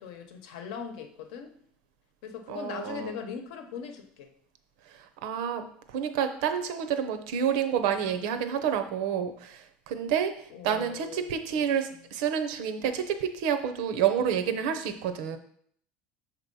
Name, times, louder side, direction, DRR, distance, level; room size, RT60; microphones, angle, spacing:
voice 1, 0.0-1.5 2.2-4.3 10.5-11.6, left 7 dB, 80° left, 6 dB, 0.9 m, -40 dB
voice 2, 2.5-3.2 4.9-15.4, right 8 dB, 75° right, 9 dB, 0.7 m, -29 dB
6.2 x 3.0 x 5.4 m, 0.64 s
cardioid pair, 170°, 4 cm